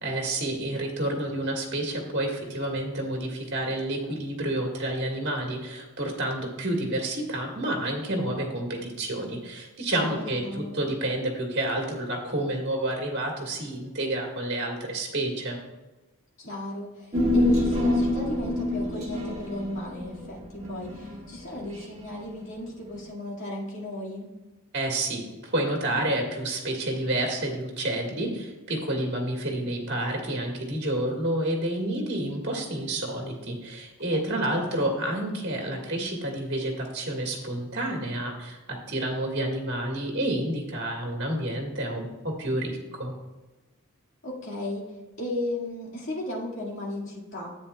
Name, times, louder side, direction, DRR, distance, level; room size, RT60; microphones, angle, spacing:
voice 1, 0.0-15.6 24.7-43.1, right 1 dB, 55° right, 1 dB, 1.8 m, -29 dB
voice 2, 10.0-10.8 16.4-24.3 34.3-34.6 44.2-44.9 45.2-47.6, left 1 dB, 70° left, -5 dB, 2.0 m, -35 dB
Human voice, 17.1-21.7 22.0-22.1, left 1 dB, 30° right, 1.5 m, -26 dB
10.0 x 8.4 x 2.3 m, 1.1 s
head